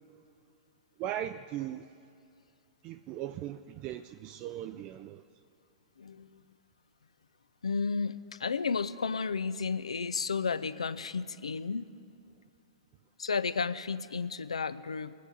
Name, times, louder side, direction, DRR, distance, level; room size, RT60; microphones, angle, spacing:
voice 1, 1.0-1.9 2.8-5.2, right 11 dB, 35° right, 9 dB, 0.3 m, -38 dB
voice 2, 6.0-6.4 7.6-11.9 13.2-15.1, left 5 dB, 75° left, 14 dB, 0.4 m, -32 dB
21.0 x 8.5 x 5.4 m, 2.4 s
figure-of-eight pair, 110°, 3 cm